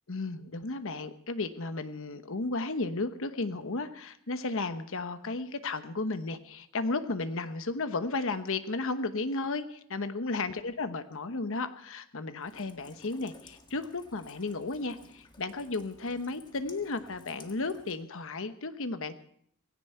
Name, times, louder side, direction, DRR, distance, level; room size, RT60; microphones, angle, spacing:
voice 1, 0.1-19.1, left 3 dB, 65° left, 10 dB, 1.1 m, -34 dB
Rain, 12.4-18.0, left 2 dB, 20° left, 1.7 m, -55 dB
18.0 x 17.0 x 4.5 m, 0.67 s
head